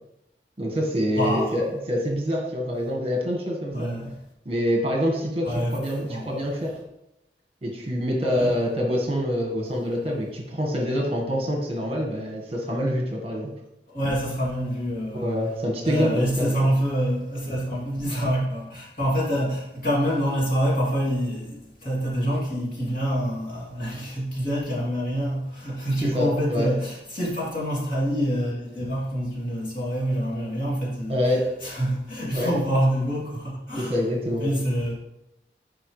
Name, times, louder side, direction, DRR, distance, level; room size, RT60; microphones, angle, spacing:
voice 1, 0.6-3.9 4.4-6.7 7.6-13.5 15.1-16.7 26.0-26.7 31.1-31.5 32.3-32.5 33.8-34.5, equal, 35° right, 1.5 m, -26 dB
voice 2, 1.2-1.6 3.7-4.1 5.4-5.8 6.1-6.3 8.3-8.5 13.9-15.3 15.8-31.2 31.6-33.9 34.4-34.9, equal, 50° left, 2.8 m, -26 dB
11.0 x 5.2 x 3.3 m
head